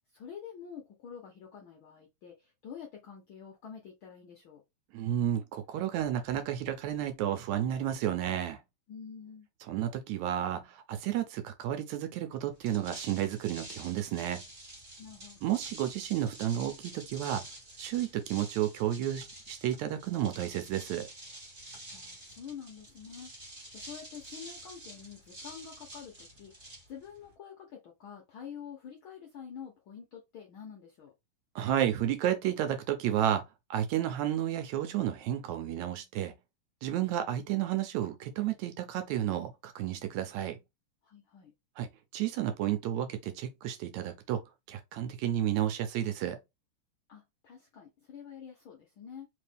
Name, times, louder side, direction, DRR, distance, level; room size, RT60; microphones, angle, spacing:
voice 1, 0.1-4.6 8.9-9.5 15.0-15.5 21.9-31.1 41.0-41.5 47.1-49.3, left 7 dB, 75° left, 1.2 m, -47 dB
voice 2, 4.9-8.6 9.7-14.4 15.4-17.4 17.8-21.1 31.6-33.4 33.7-36.3 36.8-40.6 41.8-41.9 42.1-44.4 44.7-46.4, right 11 dB, 75° right, 1.9 m, -31 dB
sound 1, 12.5-27.3, right 1 dB, 25° right, 1.2 m, -48 dB
4.3 x 3.2 x 3.3 m
omnidirectional pair, 3.5 m